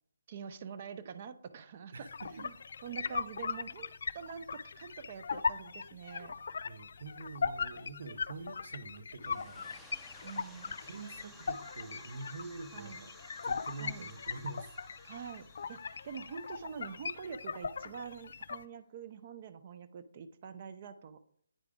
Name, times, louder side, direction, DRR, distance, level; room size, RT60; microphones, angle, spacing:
voice 1, 0.3-2.5 2.8-3.9 4.1-6.4 10.2-10.8 12.7-13.0 13.8-14.1 15.0-21.2, right 7 dB, 40° right, 0.5 m, -45 dB
voice 2, 1.9-2.5 6.6-10.1 10.8-13.2 13.4-14.7, right 3 dB, 60° right, 0.9 m, -46 dB
sound 1, 2.1-18.6, left 5 dB, 60° left, 0.4 m, -39 dB
sound 2, 9.2-17.7, left 1 dB, ahead, 0.7 m, -57 dB
9.1 x 4.8 x 3.6 m
figure-of-eight pair, 150°, 0 cm